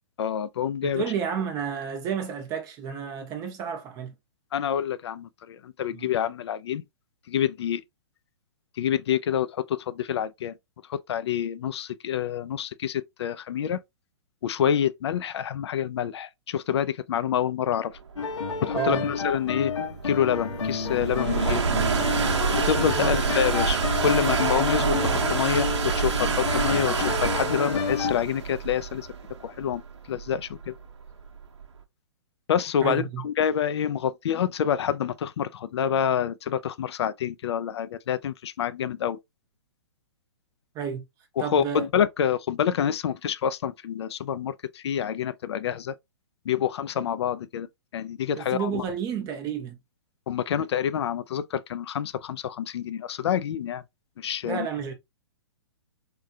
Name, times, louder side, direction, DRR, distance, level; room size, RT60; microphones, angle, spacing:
voice 1, 0.2-1.0 4.5-6.8 7.3-7.8 8.8-10.5 10.9-13.8 14.4-17.9 18.6-19.7 20.0-21.7 22.7-29.1 29.4-29.8 30.1-30.7 32.5-39.2 41.4-45.9 46.5-47.7 47.9-48.8 50.3-53.8 54.2-54.7, left 9 dB, 65° left, 0.4 m, -27 dB
voice 2, 0.8-4.1 5.9-6.1 18.7-19.1 22.9-23.2 32.8-33.2 40.7-41.1 41.4-41.9 48.4-49.8 54.4-54.9, right 7 dB, 25° right, 0.7 m, -31 dB
sound 1, 18.2-28.1, left 5 dB, 90° left, 0.9 m, -30 dB
sound 2, 18.3-31.6, right 5 dB, 75° right, 0.7 m, -27 dB
3.6 x 2.3 x 2.6 m
hypercardioid pair, 135°, 15 cm